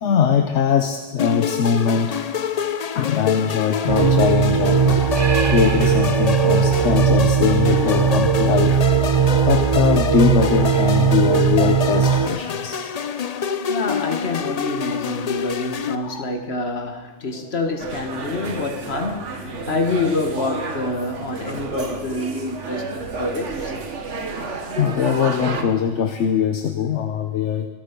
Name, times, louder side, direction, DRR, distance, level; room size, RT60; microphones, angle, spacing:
voice 1, 0.0-2.2 2.9-5.0 5.5-9.0 9.5-12.8 16.0-16.3 17.3-17.5 24.5-27.7, left 7 dB, 75° left, 6 dB, 1.2 m, -21 dB
sound 1, 1.2-15.9, left 7 dB, 45° left, 0.6 m, -26 dB
sound 2, 3.9-12.3, right 7 dB, 25° right, 0.6 m, -18 dB
voice 2, 13.7-23.7 24.8-24.9, left 3 dB, 60° left, 6 dB, 1.8 m, -27 dB
sound 3, 17.8-25.6, right 4 dB, 85° right, 1.7 m, -31 dB
26.0 x 9.0 x 5.2 m, 1.4 s
omnidirectional pair, 1.2 m